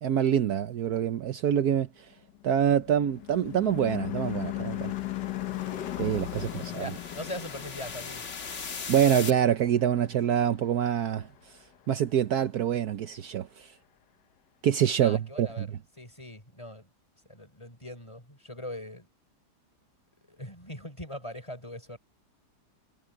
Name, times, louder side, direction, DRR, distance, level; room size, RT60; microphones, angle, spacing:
voice 1, 0.0-1.9 2.4-4.9 6.0-6.9 8.9-11.3 11.9-13.7 14.6-15.7, right 9 dB, 70° right, 1.3 m, -26 dB
Car passing by / Truck / Engine, 2.3-11.0, left 14 dB, 80° left, 1.6 m, -37 dB
sound 1, 3.3-9.3, left 5 dB, 45° left, 1.6 m, -41 dB
voice 2, 6.3-8.3 15.0-15.7 16.0-16.9 17.3-19.1 20.3-22.0, left 1 dB, 15° left, 6.0 m, -41 dB
omnidirectional pair, 1.8 m